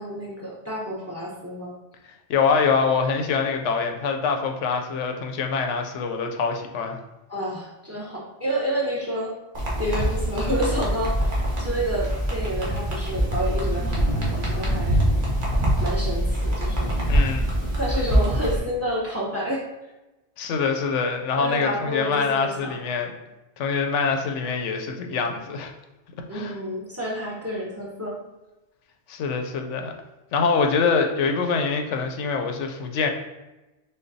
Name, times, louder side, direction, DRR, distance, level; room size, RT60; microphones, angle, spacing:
voice 1, 0.0-1.7 7.3-9.3 9.8-15.0 15.8-16.9 17.8-19.6 21.4-22.8 26.3-28.2, equal, 15° right, -4 dB, 0.8 m, -29 dB
voice 2, 2.3-7.0 17.1-17.5 20.4-23.1 23.6-25.7 26.3-26.6 29.1-29.9 30.3-33.1, left 5 dB, 90° left, 4 dB, 0.9 m, -24 dB
sound 1, 9.5-18.6, equal, 40° right, 1.0 m, -24 dB
6.5 x 2.2 x 2.6 m, 1.0 s
omnidirectional pair, 1.2 m